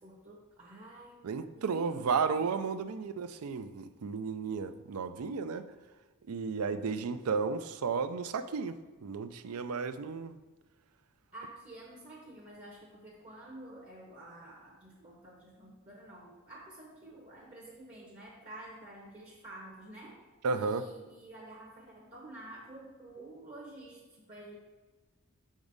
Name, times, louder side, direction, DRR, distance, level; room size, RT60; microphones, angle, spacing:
voice 1, 0.0-2.9 11.3-20.2 20.5-24.6, right 1 dB, 35° right, -3 dB, 0.9 m, -50 dB
voice 2, 1.2-5.7 6.3-10.4 20.4-20.8, right 5 dB, 75° right, 11 dB, 0.4 m, -33 dB
6.1 x 5.1 x 3.9 m, 1.2 s
head